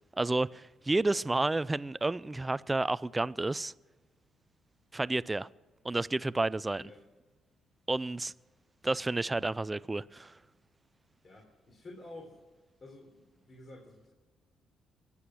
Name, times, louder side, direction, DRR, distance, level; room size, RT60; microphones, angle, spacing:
voice 1, 0.2-3.7 4.9-5.5 5.8-6.9 7.9-8.3 8.8-10.3, right 2 dB, 15° right, 0.4 m, -30 dB
voice 2, 11.2-12.4 12.8-14.1, left 2 dB, 45° left, 3.7 m, -50 dB
23.5 x 8.5 x 6.2 m
cardioid pair, 90°, 0 cm